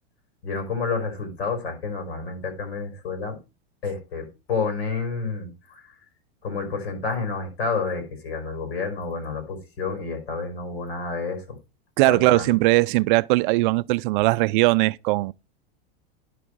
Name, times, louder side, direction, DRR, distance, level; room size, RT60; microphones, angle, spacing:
voice 1, 0.4-3.4 3.8-5.9 6.4-11.6 12.0-12.5, left 4 dB, 90° left, 5.3 m, -29 dB
voice 2, 12.0-15.3, right 21 dB, 55° right, 0.5 m, -20 dB
11.0 x 6.0 x 4.6 m
supercardioid pair, 145°, 31 cm